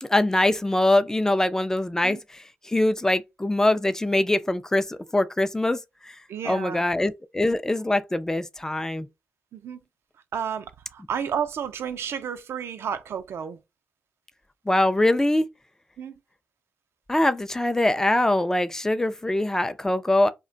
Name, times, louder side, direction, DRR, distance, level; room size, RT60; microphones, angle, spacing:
voice 1, 0.0-6.2 6.5-9.1 14.7-15.5 17.1-20.3, left 1 dB, 10° left, 0.4 m, -23 dB
voice 2, 6.3-6.8 9.5-9.8 10.3-13.6 16.0-16.1, right 8 dB, 65° right, 0.4 m, -31 dB
2.4 x 2.2 x 3.7 m
supercardioid pair, 50°, 5 cm